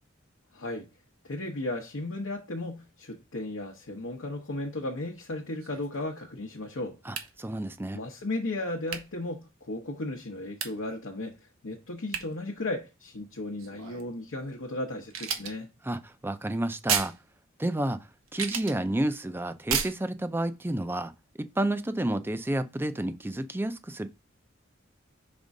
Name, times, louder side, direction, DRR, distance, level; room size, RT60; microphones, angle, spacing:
voice 1, 0.5-0.9 1.2-7.0 7.9-11.4 11.6-15.7, left 2 dB, 70° left, 0.9 m, -35 dB
sound 1, 5.6-6.2 7.2-7.3 8.9-9.1 10.6-10.8 12.1-12.3 13.6-14.1 15.1-15.6 16.9-17.2 18.2-18.8 19.7-19.9, right 7 dB, 80° right, 0.9 m, -32 dB
voice 2, 7.1-8.0 15.8-17.1 17.6-21.1 21.4-24.1, right 1 dB, 10° right, 0.4 m, -30 dB
5.2 x 3.6 x 5.2 m
head